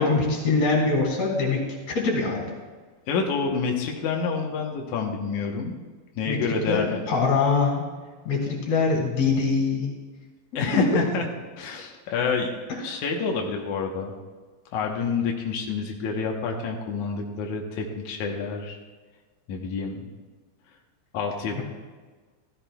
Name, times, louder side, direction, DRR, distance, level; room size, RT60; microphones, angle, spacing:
voice 1, 0.0-2.4 6.3-6.4 6.7-7.9 8.2-9.9 10.5-11.0 21.6-21.7, left 4 dB, 45° left, -1 dB, 3.3 m, -23 dB
voice 2, 3.1-5.7 6.2-7.0 10.5-11.2 11.6-12.5 12.8-14.1 14.7-18.8 19.5-20.1 21.1-21.6, left 5 dB, 85° left, 1 dB, 1.7 m, -28 dB
14.5 x 14.5 x 2.3 m, 1.4 s
omnidirectional pair, 5.0 m